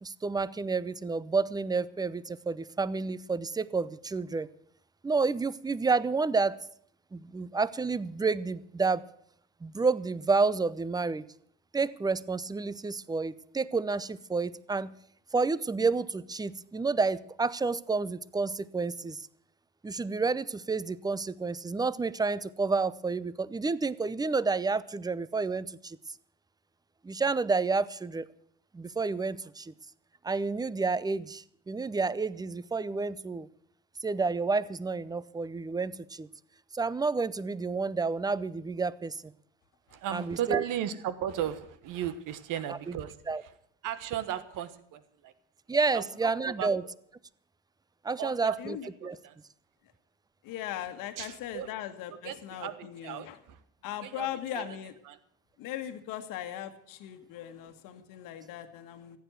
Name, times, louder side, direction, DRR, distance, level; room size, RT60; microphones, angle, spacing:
voice 1, 0.0-4.5 5.0-6.6 7.1-9.0 9.6-11.2 11.7-14.9 15.3-19.3 19.8-26.0 27.0-28.3 28.7-29.7 30.2-33.5 34.0-36.3 36.7-39.2 40.1-40.6 42.7-43.0 43.3-43.4 45.7-46.8 48.0-48.8 49.0-49.2, right 4 dB, 10° right, 19 dB, 0.6 m, -30 dB
voice 2, 39.9-43.5 43.8-45.3 45.9-46.7 48.2-48.6 49.0-49.4 51.2-51.7 52.2-53.6 54.0-54.3 54.5-54.8 55.0-55.2, right 11 dB, 60° right, 13 dB, 1.4 m, -36 dB
voice 3, 48.6-49.2 50.4-53.4 53.8-54.9 55.6-59.2, left 11 dB, 65° left, 7 dB, 1.6 m, -39 dB
14.5 x 9.2 x 8.0 m, 0.67 s
hypercardioid pair, 65°, 36 cm